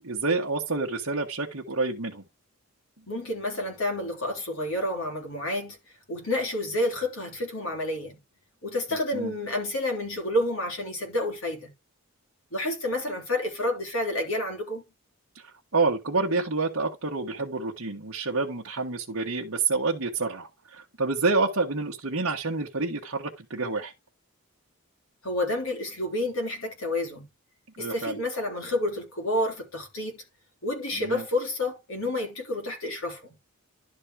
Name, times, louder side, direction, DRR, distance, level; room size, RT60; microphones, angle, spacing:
voice 1, 0.0-2.2 9.1-9.3 15.3-23.9 27.8-28.2 30.9-31.2, right 3 dB, 60° right, 1.4 m, -28 dB
voice 2, 3.1-5.8 6.1-8.2 8.6-11.7 12.5-14.8 25.2-27.3 27.8-30.2 30.6-33.3, left 1 dB, 60° left, 3.7 m, -29 dB
11.5 x 4.2 x 4.8 m
head